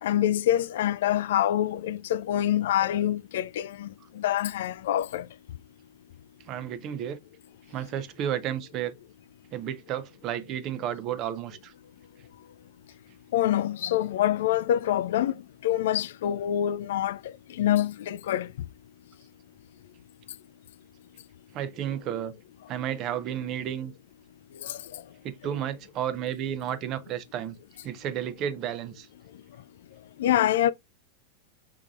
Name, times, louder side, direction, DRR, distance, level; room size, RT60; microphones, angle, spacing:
voice 1, 0.0-5.3 13.3-15.4 15.6-17.2 17.5-18.5 24.6-25.0 30.2-30.7, left 11 dB, 55° left, 0.3 m, -26 dB
voice 2, 6.5-7.2 7.7-8.9 9.5-11.7 21.5-22.3 22.7-23.9 25.2-27.6 27.8-29.1, right 10 dB, 35° right, 0.7 m, -32 dB
5.4 x 3.6 x 2.3 m
figure-of-eight pair, 90°, 0 cm